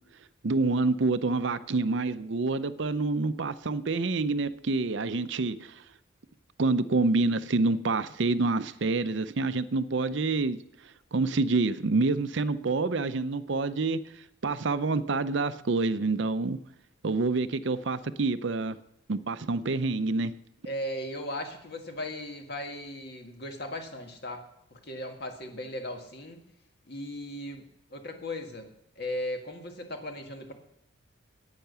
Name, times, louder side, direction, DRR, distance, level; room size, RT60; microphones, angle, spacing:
voice 1, 0.4-5.8 6.6-10.6 10.8-16.6 17.0-18.8 19.1-20.3, right 3 dB, 60° right, 13 dB, 0.6 m, -27 dB
voice 2, 20.6-24.4 24.7-26.4 26.9-28.7 29.0-30.5, left 1 dB, 50° left, 4 dB, 1.8 m, -37 dB
10.5 x 9.0 x 6.8 m, 0.78 s
head